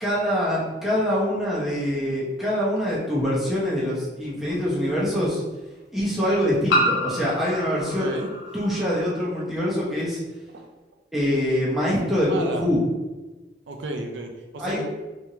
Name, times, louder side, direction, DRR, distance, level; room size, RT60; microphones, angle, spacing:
voice 1, 0.0-5.4 5.9-8.1 8.5-10.2 11.1-12.8 14.6-14.8, equal, ahead, -8 dB, 0.8 m, -24 dB
sound 1, 2.8-2.9 4.5-4.6 6.7-9.2, equal, 90° left, 0.9 m, -27 dB
voice 2, 7.8-8.3 10.5-10.7 12.3-12.7 13.7-14.9, right 2 dB, 90° right, 4 dB, 0.5 m, -32 dB
3.5 x 3.0 x 2.8 m, 1.2 s
head